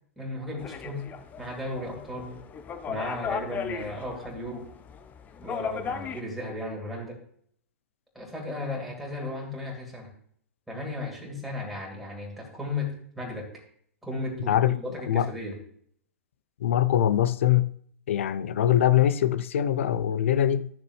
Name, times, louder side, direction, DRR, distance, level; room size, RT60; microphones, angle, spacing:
voice 1, 0.2-1.1 1.4-2.4 2.9-4.7 5.4-7.2 8.1-10.1 10.7-13.5 14.0-15.6, left 2 dB, 5° right, 3.0 m, -35 dB
sound 1, 0.6-6.2, left 6 dB, 20° left, 0.8 m, -36 dB
voice 2, 16.6-17.7 18.1-20.7, left 11 dB, 60° left, 0.6 m, -23 dB
13.5 x 6.7 x 3.2 m
figure-of-eight pair, 110°, 8 cm